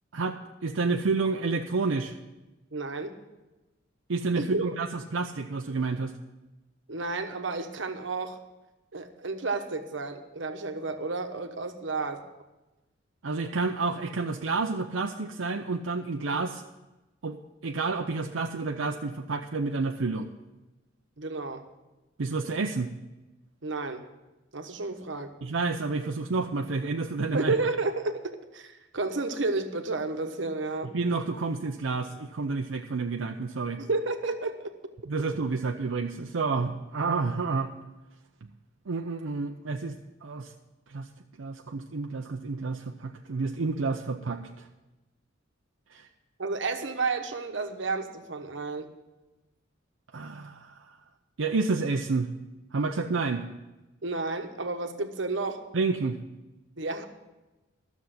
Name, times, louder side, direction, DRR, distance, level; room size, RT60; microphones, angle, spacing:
voice 1, 0.1-2.1 4.1-6.2 13.2-16.6 17.2-20.3 22.2-22.9 25.4-27.6 30.9-33.8 35.1-37.7 38.9-40.5 40.9-41.1 41.4-44.7 45.9-46.1 50.1-51.0 51.4-52.3 52.7-53.4 55.7-56.2, right 3 dB, 90° right, 3 dB, 0.6 m, -30 dB
voice 2, 2.7-3.2 4.4-4.8 6.9-8.4 8.9-12.2 21.2-21.6 23.6-24.0 24.5-25.3 27.3-28.2 28.5-31.0 33.8-34.7 46.4-48.9 54.0-55.6 56.8-57.0, right 3 dB, 70° right, 7 dB, 1.1 m, -31 dB
12.5 x 7.2 x 7.8 m, 1.1 s
head